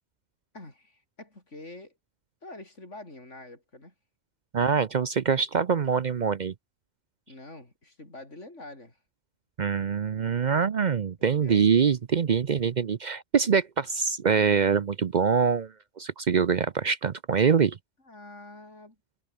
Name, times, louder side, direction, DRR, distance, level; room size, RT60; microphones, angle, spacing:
voice 1, 0.5-2.0 2.4-3.9 7.3-9.0 11.2-11.6 18.0-19.0, left 2 dB, 90° left, 6.1 m, -46 dB
voice 2, 4.5-6.5 9.6-17.8, right 6 dB, 45° right, 0.7 m, -24 dB
omnidirectional pair, 1.2 m